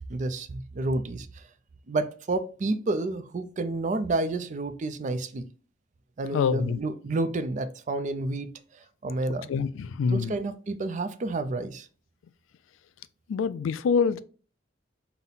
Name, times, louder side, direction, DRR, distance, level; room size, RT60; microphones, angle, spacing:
voice 1, 0.1-1.4 1.9-5.5 6.2-9.5 10.1-11.9, right 2 dB, 40° right, 0.4 m, -30 dB
voice 2, 6.3-6.8 9.5-10.3 13.3-14.2, left 6 dB, 80° left, 0.3 m, -25 dB
5.6 x 2.1 x 3.9 m
head